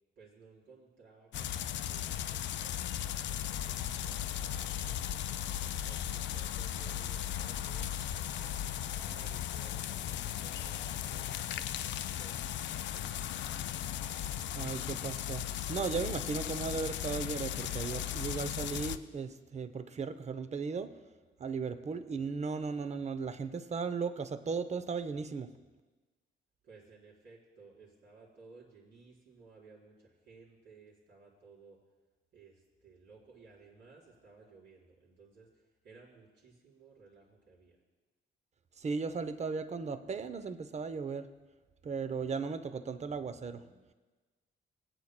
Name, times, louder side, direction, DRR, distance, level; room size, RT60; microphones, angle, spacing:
voice 1, 0.2-1.6 1.9-2.9 3.3-5.0 5.6-11.4 12.0-12.4 12.8-13.4 26.6-31.8 32.3-37.8, right 4 dB, 65° right, -6 dB, 4.0 m, -58 dB
sound 1, 1.3-19.0, left 11 dB, 65° left, 0.4 m, -37 dB
voice 2, 14.5-20.9 21.4-25.5 38.8-41.3 41.8-43.7, right 5 dB, 35° right, 11 dB, 0.6 m, -36 dB
23.5 x 8.5 x 2.2 m, 1.3 s
cardioid pair, 90°, 20 cm